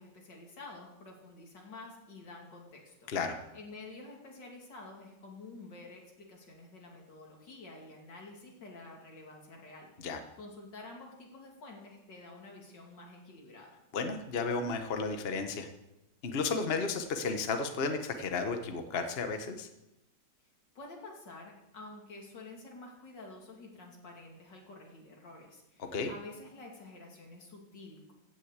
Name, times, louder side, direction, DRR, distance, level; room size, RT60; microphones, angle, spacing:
voice 1, 0.0-3.1 3.5-13.7 20.7-28.1, left 2 dB, 80° left, 0 dB, 3.3 m, -49 dB
voice 2, 13.9-15.7 16.2-19.7 25.8-26.1, left 4 dB, 40° left, 6 dB, 1.2 m, -33 dB
15.5 x 6.5 x 8.1 m, 0.91 s
omnidirectional pair, 1.9 m